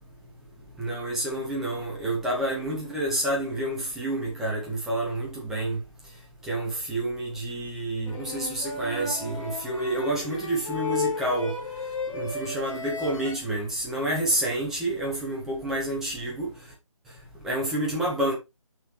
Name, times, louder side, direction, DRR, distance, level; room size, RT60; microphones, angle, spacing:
voice 1, 0.8-5.8 6.5-11.5 12.1-16.5 17.4-18.3, right 1 dB, ahead, 1.0 m, -29 dB
sound 1, 8.1-13.4, left 2 dB, 65° left, 2.4 m, -33 dB
6.2 x 5.6 x 3.2 m
figure-of-eight pair, 150°, 18 cm